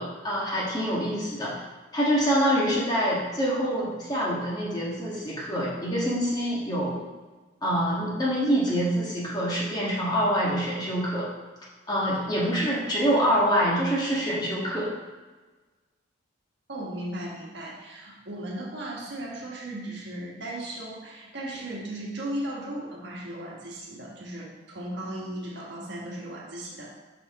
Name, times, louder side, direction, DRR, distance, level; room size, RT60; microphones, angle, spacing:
voice 1, 0.0-1.5 1.9-7.0 7.6-11.3 11.9-14.9, equal, 20° left, -6 dB, 1.5 m, -25 dB
voice 2, 12.4-12.8 13.1-13.4 16.7-26.9, right 1 dB, 60° right, -4 dB, 1.3 m, -36 dB
5.6 x 4.9 x 4.1 m, 1.3 s
head